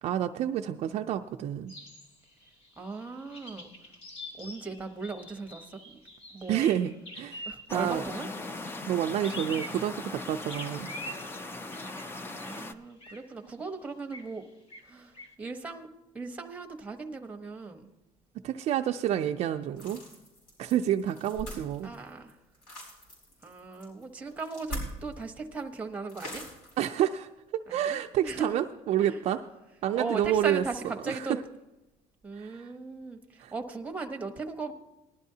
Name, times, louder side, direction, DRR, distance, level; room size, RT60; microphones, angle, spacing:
voice 1, 0.0-1.7 6.5-8.0 8.9-10.9 18.4-20.0 20.6-21.9 26.8-27.3 27.7-29.4 29.8-31.4 32.4-32.7 33.4-33.5, right 11 dB, 50° right, 5 dB, 0.4 m, -29 dB
sound 1, 1.7-7.9 9.2-10.1 10.5-12.7 13.0-13.3 14.1-14.4 14.7-15.3, left 1 dB, 40° left, 1.2 m, -45 dB
voice 2, 2.8-3.7 4.4-6.0 6.3-6.7 7.4-8.3 12.2-14.4 14.8-17.9 21.8-22.4 23.4-26.4 27.7-28.0 28.2-28.6 29.0-29.2 29.9-31.4 32.2-34.7, right 3 dB, 10° right, 4 dB, 0.9 m, -38 dB
sound 2, 7.7-12.7, left 2 dB, 15° left, 0.4 m, -39 dB
sound 3, 19.8-25.3 25.5-25.6 26.1-27.0, equal, 75° left, 4.9 m, -42 dB
19.5 x 11.5 x 2.8 m, 0.97 s
cardioid pair, 165°, 14 cm